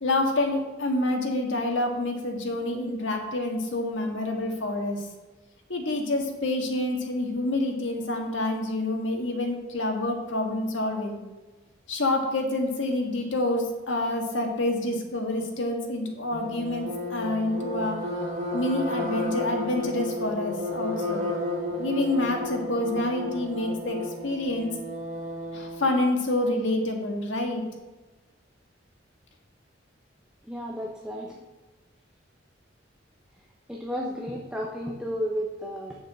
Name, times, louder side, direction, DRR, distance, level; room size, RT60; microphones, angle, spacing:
voice 1, 0.0-5.1 5.7-11.2 11.9-18.0 18.5-21.3 21.8-24.0 24.2-24.7 25.5-27.6, left 2 dB, 80° left, 2 dB, 1.7 m, -27 dB
sound 1, 16.3-25.9, left 1 dB, 40° right, 1.7 m, -32 dB
voice 2, 30.4-31.4 33.7-36.0, equal, 5° right, -1 dB, 1.0 m, -32 dB
7.0 x 5.9 x 7.6 m, 1.2 s
head